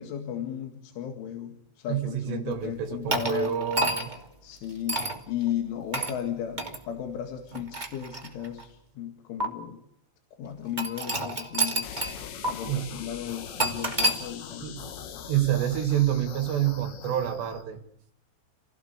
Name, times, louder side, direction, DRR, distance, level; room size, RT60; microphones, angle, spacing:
voice 1, 0.0-3.6 4.4-5.0 5.3-9.8 10.4-11.9 12.4-14.7 15.0-15.1, left 10 dB, 85° left, 5 dB, 4.4 m, -35 dB
voice 2, 1.9-4.1 12.7-12.9 14.6-14.9 15.3-17.8, right 11 dB, 70° right, 7 dB, 3.7 m, -27 dB
sound 1, 3.1-4.2 4.9-5.2 5.9-6.2 6.6-6.8 7.5-8.6 9.4-9.5 10.8-12.2 12.4-12.5 13.6-14.2, right 1 dB, 15° right, 1.7 m, -28 dB
sound 2, 11.8-17.6, left 8 dB, 70° left, 3.9 m, -41 dB
30.0 x 17.0 x 8.2 m, 0.79 s
omnidirectional pair, 5.4 m